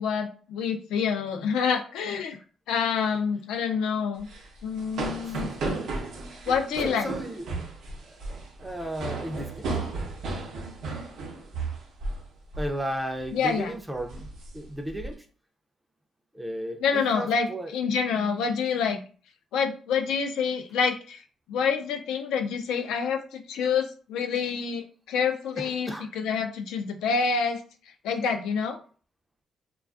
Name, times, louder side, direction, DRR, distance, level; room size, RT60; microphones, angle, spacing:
voice 1, 0.0-2.4 2.7-4.3 4.6-5.5 6.5-7.1 13.3-13.7 16.8-19.0 19.5-21.2 21.5-27.6 28.0-28.8, left 6 dB, 90° left, 4 dB, 0.3 m, -27 dB
sound 1, 4.2-12.3 12.5-12.8 13.2-13.5 14.0-15.1, right 3 dB, 75° right, 0.7 m, -34 dB
voice 2, 6.8-7.7 8.0-9.7 12.6-14.3 14.5-15.2 16.3-17.7 25.6-26.1, right 1 dB, 10° right, 4 dB, 0.4 m, -34 dB
2.4 x 2.3 x 2.4 m, 0.40 s
cardioid pair, 90°, 0 cm